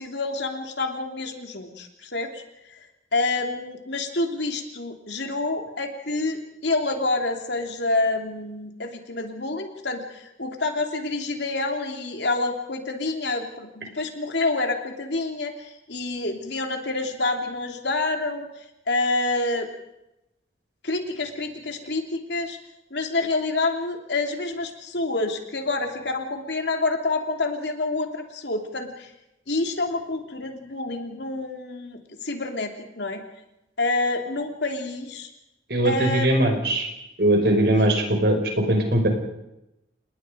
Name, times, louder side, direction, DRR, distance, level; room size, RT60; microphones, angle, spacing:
voice 1, 0.0-2.4 3.1-18.5 18.9-19.7 20.8-22.6 22.9-29.1 29.5-33.2 33.8-35.3 35.8-36.3 37.8-37.9, left 2 dB, 70° left, 4 dB, 3.0 m, -28 dB
voice 2, 35.7-36.9 37.2-39.1, right 1 dB, 60° right, 4 dB, 5.1 m, -20 dB
28.5 x 20.5 x 5.2 m, 0.90 s
head